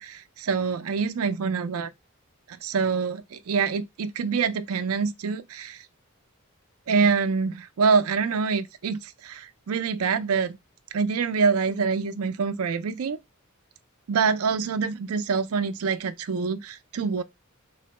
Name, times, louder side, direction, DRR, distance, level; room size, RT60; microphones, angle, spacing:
voice 1, 0.0-1.9 2.6-5.8 6.9-10.6 10.9-13.2 14.1-17.2, right 5 dB, 90° right, 0.4 m, -25 dB
3.9 x 2.1 x 2.9 m
head